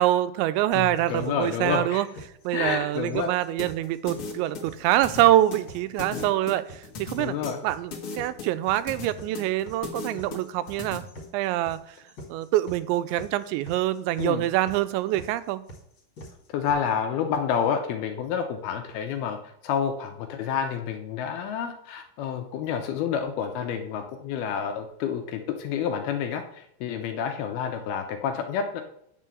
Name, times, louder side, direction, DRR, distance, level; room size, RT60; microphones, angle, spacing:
voice 1, 0.0-2.1 2.4-7.4 7.6-11.0 11.3-11.8 12.3-15.6, right 14 dB, 90° right, 14 dB, 2.9 m, -25 dB
voice 2, 0.7-2.0 2.5-3.3 6.1-6.3 7.2-7.6 14.2-14.4 16.5-28.8, left 7 dB, 75° left, 4 dB, 2.4 m, -29 dB
sound 1, 0.7-16.7, equal, 35° left, 2.5 m, -45 dB
sound 2, 3.6-11.0, left 4 dB, 60° left, 1.4 m, -37 dB
9.2 x 5.5 x 7.6 m, 0.72 s
omnidirectional pair, 5.1 m